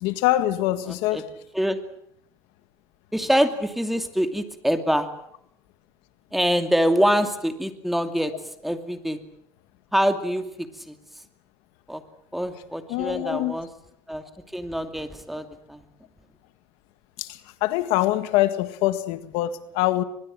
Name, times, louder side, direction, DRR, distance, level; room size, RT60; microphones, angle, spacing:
voice 1, 0.0-1.3 12.9-13.6 17.2-20.0, left 15 dB, 85° left, 1.8 m, -24 dB
voice 2, 3.1-5.1 6.3-8.3 8.6-9.2 9.9-10.9 11.9-12.0 12.3-13.7 14.1-14.2 14.5-15.8, equal, ahead, 2.5 m, -24 dB
23.5 x 21.5 x 7.7 m
cardioid pair, 120°, 9 cm